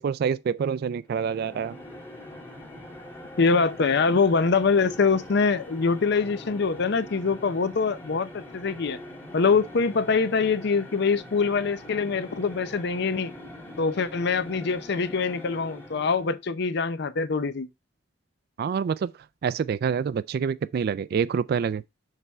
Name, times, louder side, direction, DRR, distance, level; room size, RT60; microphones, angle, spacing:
voice 1, 0.0-1.8 3.6-3.7 18.6-21.8, right 6 dB, 55° right, 0.3 m, -27 dB
sound 1, 1.1-16.4, left 1 dB, 10° left, 1.5 m, -43 dB
voice 2, 3.4-9.0 9.3-13.3 13.8-17.7, left 4 dB, 65° left, 0.6 m, -24 dB
6.6 x 4.3 x 3.4 m
head